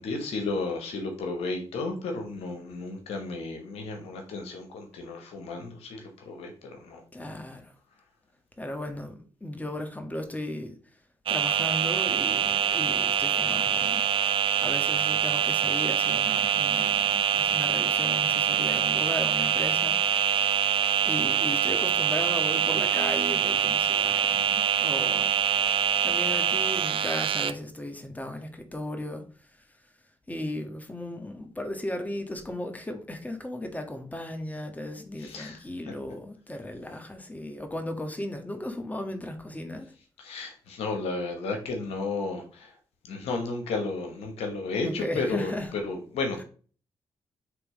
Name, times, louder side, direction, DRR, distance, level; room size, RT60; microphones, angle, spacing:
voice 1, 0.0-7.0 35.2-35.6 40.2-42.7 43.1-46.4, left 3 dB, 80° left, 1.2 m, -33 dB
voice 2, 7.1-7.7 8.6-10.8 11.3-14.0 14.6-20.4 21.0-25.3 26.0-29.2 30.3-39.9 44.8-45.7, left 1 dB, 15° left, 1.6 m, -36 dB
sound 1, 11.3-27.5, right 9 dB, 60° right, 0.5 m, -25 dB
8.4 x 3.5 x 3.2 m
supercardioid pair, 45°, 10 cm